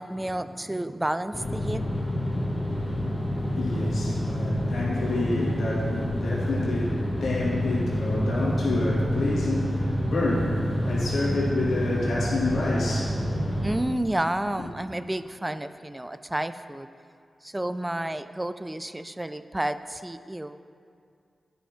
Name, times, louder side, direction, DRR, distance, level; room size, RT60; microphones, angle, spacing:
voice 1, 0.0-1.8 13.6-16.9 17.4-20.6, right 1 dB, 15° right, 12 dB, 0.4 m, -30 dB
sound 1, 1.3-13.8, equal, 15° left, 1.6 m, -28 dB
voice 2, 3.5-13.3, left 2 dB, 80° left, -6 dB, 2.2 m, -28 dB
10.0 x 5.6 x 4.4 m, 2.3 s
cardioid pair, 55°, 0 cm